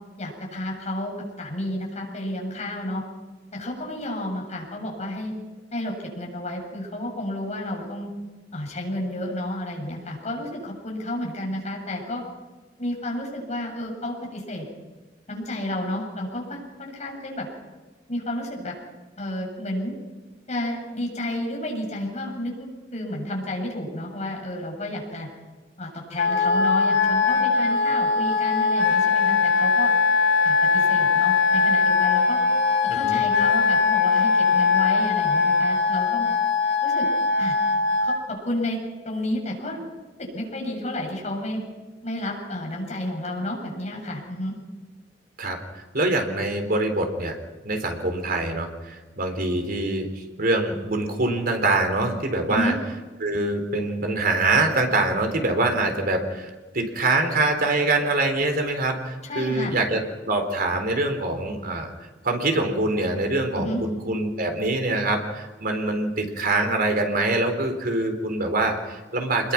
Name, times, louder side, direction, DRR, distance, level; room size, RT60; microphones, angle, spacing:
voice 1, 0.2-3.0 3.5-5.3 5.7-8.1 8.5-12.2 12.8-14.6 15.3-17.5 18.1-18.7 19.2-20.0 20.5-25.3 25.8-29.9 30.4-32.4 32.9-36.3 36.8-37.1 37.4-37.5 38.0-38.8 39.0-39.8 40.2-41.6 42.0-44.5 52.5-52.8 59.2-59.8 63.5-63.8, left 1 dB, 40° left, 0 dB, 7.7 m, -31 dB
Wind instrument woodwind instrument, 26.1-38.2, left 4 dB, 85° left, 5.4 m, -21 dB
voice 2, 45.4-47.3 47.6-50.1 50.4-52.7 53.2-60.0 60.3-61.9 62.2-69.5, right 2 dB, 55° right, 5 dB, 3.9 m, -24 dB
26.5 x 21.5 x 6.0 m, 1.2 s
head